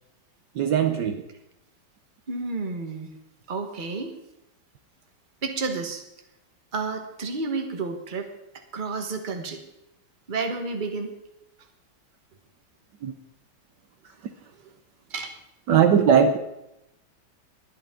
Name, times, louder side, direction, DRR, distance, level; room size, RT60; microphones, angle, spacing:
voice 1, 0.5-1.2 13.0-13.1 15.7-16.4, right 7 dB, 65° right, 8 dB, 1.4 m, -19 dB
voice 2, 2.3-3.1 3.5-4.1 5.4-6.0 6.7-8.3 8.7-9.6 10.3-11.1 15.1-15.3, right 4 dB, 30° right, 5 dB, 1.3 m, -30 dB
22.0 x 8.3 x 3.7 m, 0.86 s
omnidirectional pair, 2.1 m